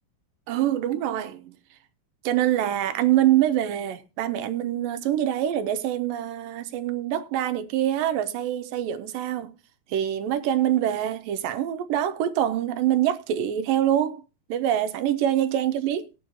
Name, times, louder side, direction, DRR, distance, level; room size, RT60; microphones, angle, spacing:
voice 1, 0.5-1.6 2.2-9.6 9.9-14.2 14.5-16.1, right 11 dB, 85° right, 2.5 m, -25 dB
19.5 x 7.1 x 3.1 m
omnidirectional pair, 3.9 m